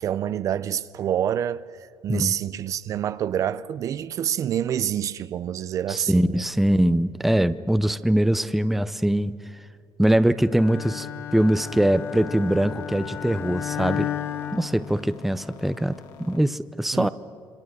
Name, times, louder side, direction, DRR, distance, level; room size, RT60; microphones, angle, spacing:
voice 1, 0.0-1.6 2.0-6.4 16.9-17.1, right 10 dB, 45° right, 0.6 m, -27 dB
voice 2, 5.9-9.4 10.0-11.1 11.3-14.1 14.5-17.1, right 1 dB, 5° right, 0.6 m, -22 dB
Bowed string instrument, 10.5-15.5, left 10 dB, 35° left, 1.7 m, -33 dB
sound 1, 11.4-16.4, left 7 dB, 65° left, 2.3 m, -48 dB
27.0 x 25.5 x 6.5 m
cardioid pair, 140°, 8 cm